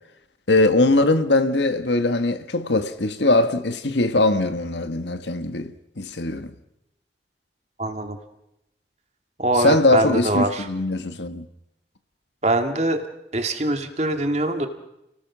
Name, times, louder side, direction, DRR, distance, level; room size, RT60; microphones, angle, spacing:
voice 1, 0.5-6.5 9.6-11.4, left 2 dB, 85° left, 1.6 m, -21 dB
voice 2, 7.8-8.2 9.4-10.7 12.4-13.0 13.3-14.7, right 1 dB, 40° right, 2.2 m, -23 dB
30.0 x 19.0 x 6.2 m
head